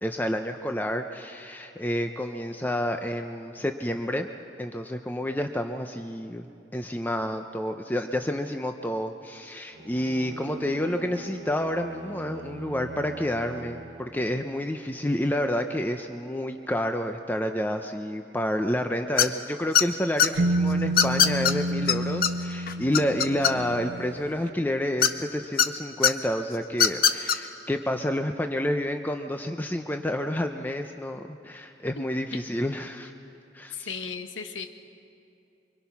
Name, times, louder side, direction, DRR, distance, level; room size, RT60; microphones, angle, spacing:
voice 1, 0.0-4.3 4.6-6.5 6.7-33.1 33.5-33.9, left 1 dB, 10° left, 5 dB, 0.6 m, -29 dB
Bowed string instrument, 9.7-14.6, right 2 dB, 90° right, 1.6 m, -42 dB
sound 1, 19.2-19.4 19.7-20.3 21.0-21.5 21.9-22.0 22.2-22.3 22.7-23.8 25.0-25.7 26.0-26.1 26.7-27.4, left 8 dB, 50° left, 0.8 m, -20 dB
sound 2, 20.4-24.2, right 1 dB, 65° right, 0.8 m, -29 dB
voice 2, 33.7-34.7, left 5 dB, 85° left, 7 dB, 1.2 m, -35 dB
25.0 x 24.0 x 5.8 m, 2.7 s
head